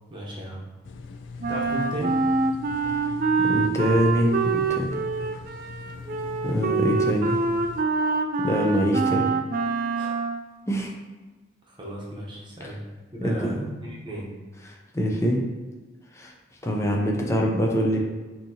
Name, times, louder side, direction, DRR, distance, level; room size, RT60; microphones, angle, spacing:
voice 1, 0.1-0.6 1.5-2.2 9.9-10.2 11.7-12.8 13.1-14.3, right 1 dB, 25° right, -4 dB, 0.9 m, -35 dB
sound 1, 0.8-7.8, left 4 dB, 85° left, 0.3 m, -40 dB
Wind instrument woodwind instrument, 1.4-10.4, right 4 dB, 50° right, 0.3 m, -25 dB
voice 2, 3.4-5.0 6.4-7.4 8.4-9.3 10.7-10.9 13.2-13.8 14.9-15.4 16.1-16.3 16.6-18.0, equal, 15° left, 0 dB, 0.6 m, -24 dB
6.0 x 2.8 x 2.8 m, 1.3 s
head